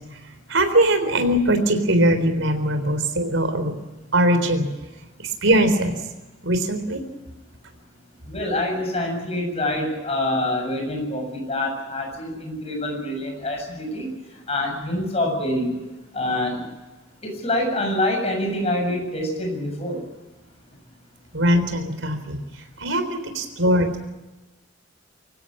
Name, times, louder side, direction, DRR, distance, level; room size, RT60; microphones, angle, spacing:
voice 1, 0.5-3.7 4.1-4.7 5.4-5.9 6.4-7.0 21.3-22.4 22.8-23.9, right 1 dB, 80° right, 8 dB, 3.8 m, -20 dB
voice 2, 8.3-14.1 14.5-15.8 16.1-16.6 17.2-20.0, left 1 dB, 35° left, 2 dB, 7.3 m, -26 dB
25.0 x 16.0 x 8.9 m, 1.1 s
head